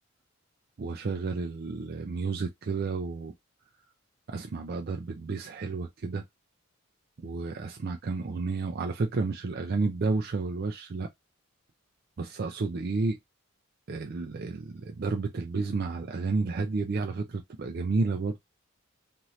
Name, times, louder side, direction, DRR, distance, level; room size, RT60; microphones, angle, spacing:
voice 1, 0.8-3.3 4.3-6.2 7.2-11.1 12.2-13.2 13.9-18.4, right 3 dB, 45° right, 0.4 m, -31 dB
2.8 x 2.5 x 3.0 m
head